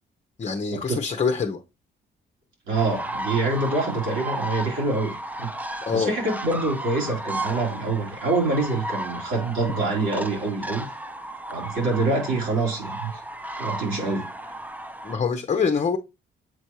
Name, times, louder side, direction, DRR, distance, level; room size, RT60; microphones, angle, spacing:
voice 1, 0.4-1.6 5.8-6.1 15.0-16.0, left 5 dB, 35° left, 0.8 m, -25 dB
sound 1, 2.7-15.2, right 1 dB, 10° right, 0.6 m, -34 dB
voice 2, 2.7-10.9 11.5-13.2 13.6-14.5, right 3 dB, 80° right, 3.6 m, -26 dB
7.6 x 4.3 x 3.1 m
cardioid pair, 90°, 20 cm